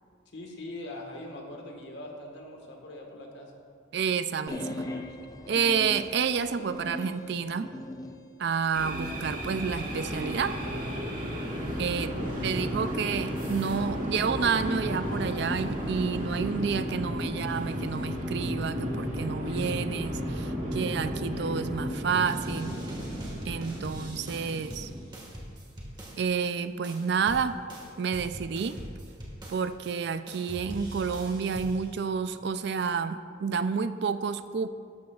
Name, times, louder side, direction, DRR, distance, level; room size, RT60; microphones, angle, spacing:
voice 1, 0.3-3.5 12.2-12.7, left 1 dB, 65° left, 1 dB, 1.6 m, -42 dB
voice 2, 3.9-4.9 5.5-7.7 8.4-10.6 11.8-22.8 23.4-24.9 26.2-27.6 28.0-28.8 29.5-34.7, right 6 dB, 60° right, 11 dB, 0.4 m, -30 dB
sound 1, 4.5-8.2, left 1 dB, 20° left, 0.5 m, -39 dB
sound 2, 8.7-25.0, equal, 45° right, 2.1 m, -33 dB
sound 3, 22.2-26.5 26.8-30.0 30.3-31.9, equal, 25° right, 1.7 m, -43 dB
12.5 x 12.0 x 2.4 m, 2.2 s
head